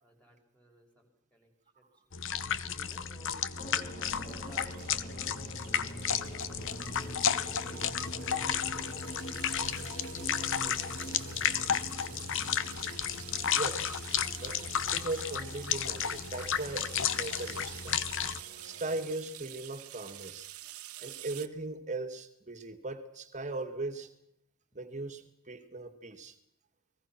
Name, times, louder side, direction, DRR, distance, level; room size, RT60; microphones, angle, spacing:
voice 1, 0.0-2.2 2.6-5.5 5.8-6.5 7.1-7.4 7.6-9.0 9.3-11.2, equal, 5° left, 5.6 m, -57 dB
sound 1, 2.1-18.4, left 8 dB, 60° left, 1.0 m, -33 dB
sound 2, 3.6-19.1, right 1 dB, 35° left, 3.1 m, -46 dB
sound 3, 3.9-21.5, right 14 dB, 80° right, 1.3 m, -49 dB
voice 2, 13.5-14.6 14.9-18.0 18.6-20.5 21.0-24.1 24.8-26.3, right 2 dB, 35° right, 2.2 m, -39 dB
29.5 x 20.0 x 6.1 m
head